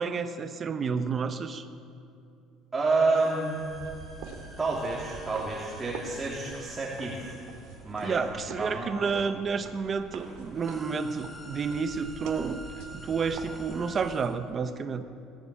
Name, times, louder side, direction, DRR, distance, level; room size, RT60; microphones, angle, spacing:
voice 1, 0.0-1.6 8.0-12.6 12.9-15.0, right 5 dB, 30° right, 9 dB, 1.2 m, -30 dB
voice 2, 2.7-3.6 4.6-7.4 7.8-8.9, right 3 dB, 15° right, -5 dB, 3.8 m, -29 dB
sound 1, 3.1-8.9 9.7-9.8 10.1-14.3, equal, 10° left, 4.6 m, -48 dB
sound 2, 3.5-14.4, right 5 dB, 85° right, 2.8 m, -45 dB
21.0 x 15.5 x 8.8 m, 2.5 s
cardioid pair, 130°, 0 cm